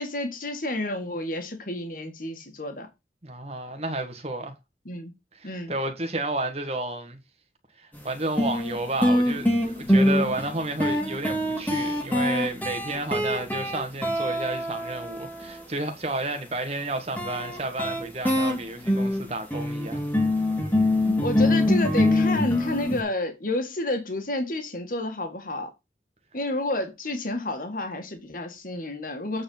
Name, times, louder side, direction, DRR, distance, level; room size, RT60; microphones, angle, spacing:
voice 1, 0.0-2.9 4.9-5.1 5.4-5.7 21.2-25.7 26.3-29.4, left 2 dB, 50° left, 1.8 m, -30 dB
voice 2, 3.2-4.5 5.4-7.2 7.8-20.1, right 2 dB, 35° right, 1.8 m, -31 dB
sound 1, 7.9-8.0 8.4-15.6 17.2-23.0, left 1 dB, 10° left, 2.1 m, -24 dB
8.6 x 4.7 x 5.5 m
head